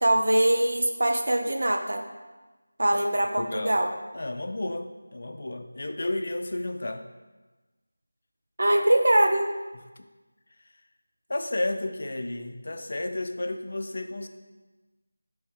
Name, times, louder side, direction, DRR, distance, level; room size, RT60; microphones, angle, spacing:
voice 1, 0.0-2.0 2.8-3.9 8.6-9.5, right 1 dB, 65° right, 3 dB, 0.8 m, -22 dB
voice 2, 3.4-3.8 4.1-7.1 11.3-14.3, left 2 dB, 50° left, 6 dB, 0.5 m, -32 dB
9.9 x 3.5 x 3.6 m, 1.2 s
figure-of-eight pair, 175°, 0 cm